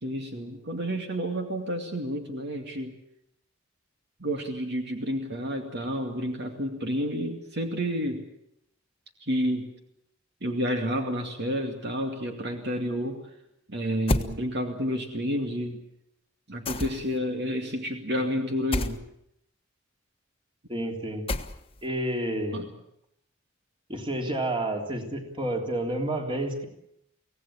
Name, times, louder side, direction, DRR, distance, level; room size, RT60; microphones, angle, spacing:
voice 1, 0.0-3.0 4.2-8.3 9.2-9.7 10.4-13.2 13.7-15.8 16.5-19.0 22.5-22.7, equal, 60° right, 4 dB, 2.4 m, -30 dB
sound 1, 14.1-14.3 16.7-17.2 18.7-19.0 21.3-21.8, left 1 dB, 30° left, 1.4 m, -28 dB
voice 2, 20.7-21.3 21.8-22.6 23.9-26.6, right 1 dB, 25° right, 2 dB, 3.5 m, -30 dB
24.5 x 17.0 x 8.7 m, 0.77 s
head